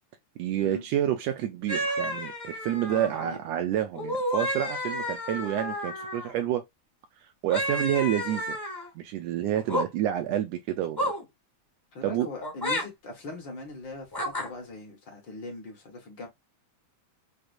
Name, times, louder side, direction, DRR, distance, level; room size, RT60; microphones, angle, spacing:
voice 1, 0.4-6.6 7.4-8.6 8.9-11.1 12.0-12.3, right 11 dB, 80° right, 1.5 m, -28 dB
Iwan Gabovitch - Monkey, 1.7-3.3 3.9-6.3 7.5-8.9 9.5-9.9 11.0-11.2 12.4-12.8 14.1-14.5, equal, 15° left, 0.9 m, -31 dB
voice 2, 2.9-3.4 9.7-9.8 11.9-14.1 14.4-16.3, left 2 dB, 50° left, 1.7 m, -40 dB
6.4 x 2.3 x 2.5 m
omnidirectional pair, 3.4 m